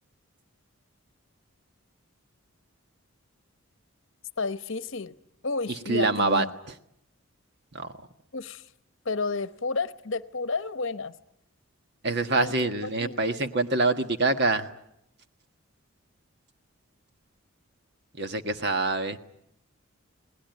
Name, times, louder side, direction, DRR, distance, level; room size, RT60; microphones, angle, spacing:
voice 1, 4.4-5.1 5.4-6.5 8.3-8.7 9.0-11.2 12.4-12.5 12.8-13.2, left 3 dB, 60° left, 1.0 m, -31 dB
voice 2, 5.9-6.4 7.7-7.9 12.0-14.7 18.2-19.2, right 3 dB, 50° right, 1.4 m, -25 dB
27.5 x 20.0 x 9.3 m
head